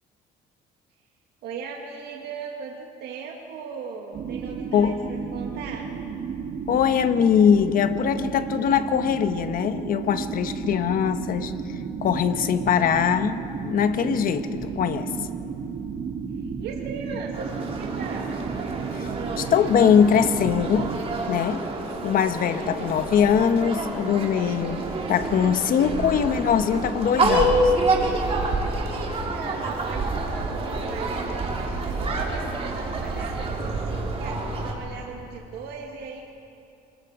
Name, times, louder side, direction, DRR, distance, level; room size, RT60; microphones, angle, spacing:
voice 1, 1.4-5.9 16.4-18.4 28.4-36.2, right 5 dB, 75° right, 0 dB, 2.0 m, -38 dB
sound 1, 4.1-21.0, right 6 dB, 55° right, 2.0 m, -33 dB
voice 2, 6.7-11.5 12.0-15.1 18.9-19.1 19.4-20.9 21.3-21.6 22.0-24.8 25.1-27.7, left 8 dB, 55° left, 10 dB, 1.1 m, -22 dB
sound 2, 17.3-34.7, right 2 dB, 35° right, 3.3 m, -28 dB
27.5 x 20.0 x 4.9 m, 2.7 s
cardioid pair, 110°, 17 cm